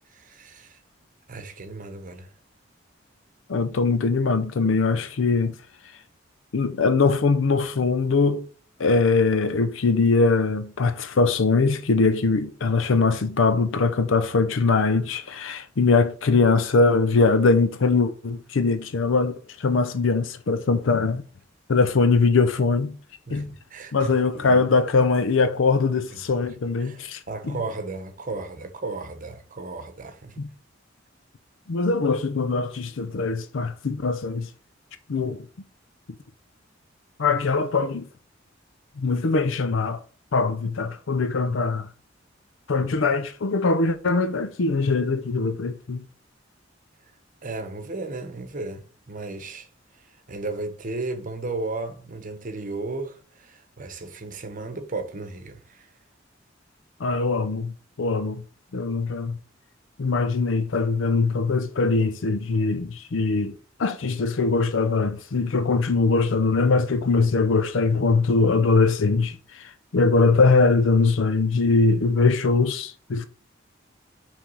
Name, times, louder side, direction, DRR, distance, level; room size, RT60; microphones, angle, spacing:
voice 1, 0.1-0.8 1.3-2.3 23.3-24.6 26.5-30.4 47.4-49.7 50.3-55.9, right 3 dB, 45° right, 0.9 m, -35 dB
voice 2, 3.5-5.6 6.5-8.5 8.8-21.2 21.7-23.0 23.3-23.5 23.9-27.2 27.5-27.6 30.4-30.5 31.7-34.5 35.1-35.4 37.2-38.0 39.0-40.0 40.3-41.9 42.7-46.0 57.0-58.4 58.7-59.4 60.0-63.5 63.8-73.3, left 4 dB, 80° left, 0.6 m, -22 dB
5.9 x 3.4 x 5.4 m
head